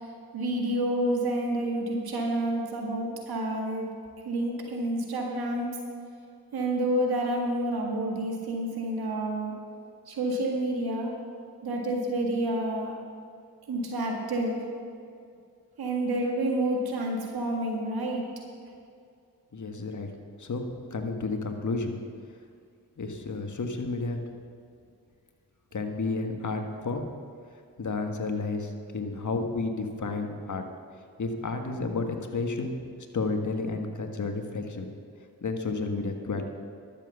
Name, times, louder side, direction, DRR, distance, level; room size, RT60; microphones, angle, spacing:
voice 1, 0.3-3.9 4.3-5.8 6.5-9.5 10.1-11.1 11.6-12.9 13.7-14.6 15.8-18.2, right 1 dB, 85° right, 1 dB, 1.9 m, -29 dB
voice 2, 19.5-20.1 20.4-20.6 20.9-22.0 23.0-24.2 25.7-27.1 27.8-30.6 31.2-32.8 33.1-34.9 35.4-36.4, left 3 dB, 55° left, 5 dB, 1.6 m, -31 dB
12.0 x 7.7 x 7.0 m, 2.3 s
supercardioid pair, 40°, 36 cm